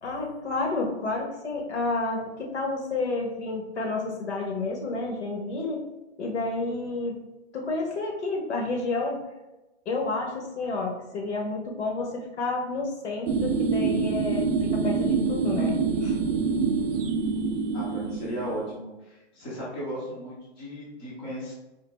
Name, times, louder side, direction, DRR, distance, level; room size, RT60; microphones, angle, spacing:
voice 1, 0.0-5.8 6.2-7.2 7.5-9.2 9.8-16.2, left 3 dB, 80° left, 1 dB, 1.3 m, -30 dB
sound 1, 13.3-18.7, right 5 dB, 55° right, 0.5 m, -26 dB
voice 2, 17.7-21.5, equal, 10° left, -8 dB, 0.3 m, -36 dB
3.9 x 2.6 x 3.4 m, 1.0 s
hypercardioid pair, 155°, 33 cm